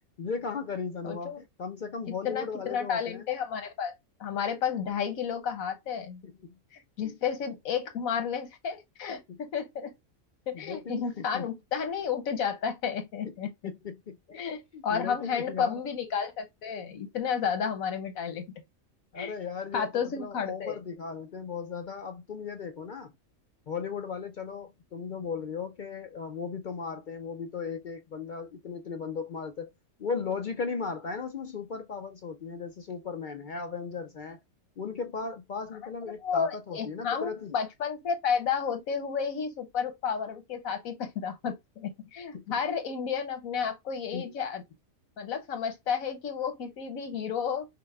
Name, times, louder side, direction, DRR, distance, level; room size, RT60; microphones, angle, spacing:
voice 1, 0.2-3.3 6.2-6.6 7.0-7.1 9.3-9.4 10.6-11.5 13.6-14.4 14.7-15.8 19.1-23.1 23.7-29.7 30.0-34.4 34.8-37.6 42.3-42.5 44.1-44.3, left 5 dB, 65° left, 0.4 m, -36 dB
voice 2, 1.0-1.4 2.2-3.9 4.2-6.2 6.7-9.9 10.5-13.5 14.4-18.5 19.2-19.3 19.7-20.8 36.2-44.6 45.2-47.7, left 7 dB, 85° left, 1.4 m, -32 dB
5.7 x 2.2 x 3.2 m
omnidirectional pair, 1.4 m